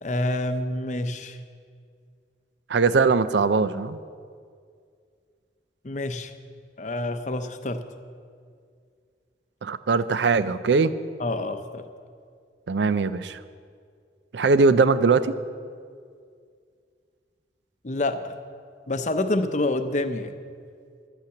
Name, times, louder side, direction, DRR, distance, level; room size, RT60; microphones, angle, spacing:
voice 1, 0.0-1.4 5.8-6.3 6.8-7.8 11.2-11.9 17.8-18.4 18.9-20.3, left 2 dB, 40° left, 9 dB, 0.7 m, -27 dB
voice 2, 2.7-4.0 9.6-10.9 12.7-13.4 14.3-15.3, right 4 dB, 80° right, 14 dB, 0.5 m, -21 dB
12.0 x 8.5 x 7.8 m, 2.2 s
head